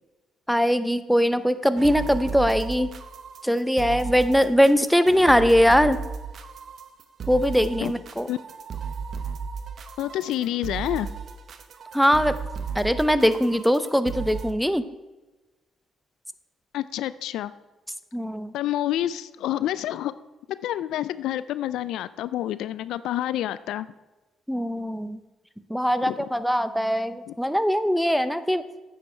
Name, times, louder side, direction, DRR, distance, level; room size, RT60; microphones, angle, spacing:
voice 1, 0.5-2.9 3.4-6.0 7.3-8.3 11.9-12.3 12.7-14.8 18.1-18.5 24.5-25.2 25.7-28.6, equal, ahead, 12 dB, 0.7 m, -21 dB
I am a gansta, 1.8-14.5, right 6 dB, 60° right, 0.9 m, -35 dB
voice 2, 10.0-11.1 16.7-17.5 18.5-20.1 20.6-23.9 26.0-26.3 27.3-27.4, left 13 dB, 80° left, 16 dB, 0.3 m, -28 dB
9.6 x 7.4 x 4.5 m, 1.1 s
supercardioid pair, 65°, 0 cm